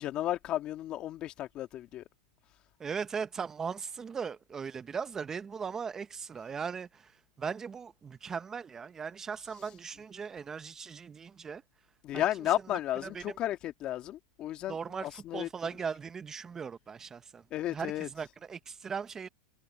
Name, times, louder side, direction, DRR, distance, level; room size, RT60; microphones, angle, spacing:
voice 1, 0.0-2.0 12.0-15.5 17.5-18.1, left 13 dB, 35° left, 2.3 m, -33 dB
voice 2, 2.8-11.6 12.1-12.2 12.7-13.4 14.7-19.3, right 6 dB, 20° right, 0.7 m, -39 dB
hypercardioid pair, 125°, 3 cm